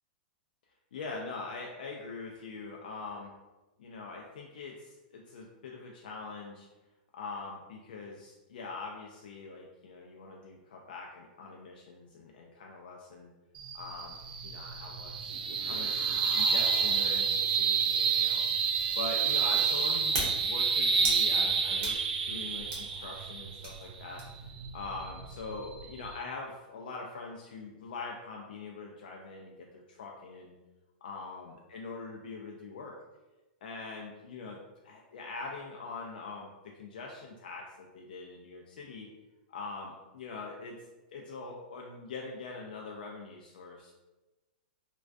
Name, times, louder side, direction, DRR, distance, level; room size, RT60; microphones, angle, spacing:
voice 1, 0.9-3.3 3.8-6.7 7.1-13.3 13.7-22.0 22.2-24.2 24.7-30.5 31.0-32.9 33.6-39.1 39.5-40.7 41.1-43.9, left 3 dB, 80° left, -1 dB, 0.3 m, -43 dB
sound 1, 13.6-26.2, right 6 dB, 70° right, 0.3 m, -29 dB
sound 2, 18.2-24.5, right 2 dB, 30° right, 0.7 m, -41 dB
2.3 x 2.2 x 2.4 m, 1.1 s
supercardioid pair, 160°, 5 cm